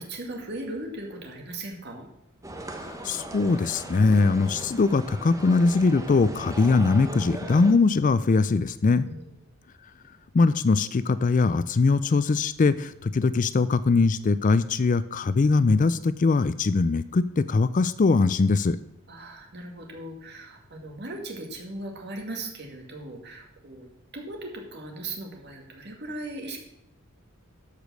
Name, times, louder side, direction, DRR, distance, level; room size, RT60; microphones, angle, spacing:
voice 1, 0.0-2.1 9.0-9.3 19.1-26.6, right 2 dB, 50° right, 2 dB, 2.1 m, -38 dB
sound 1, 2.4-7.7, right 1 dB, 15° right, 1.0 m, -38 dB
voice 2, 2.8-9.1 10.3-18.8, left 4 dB, 40° left, 15 dB, 0.4 m, -22 dB
13.0 x 5.2 x 6.2 m, 0.84 s
head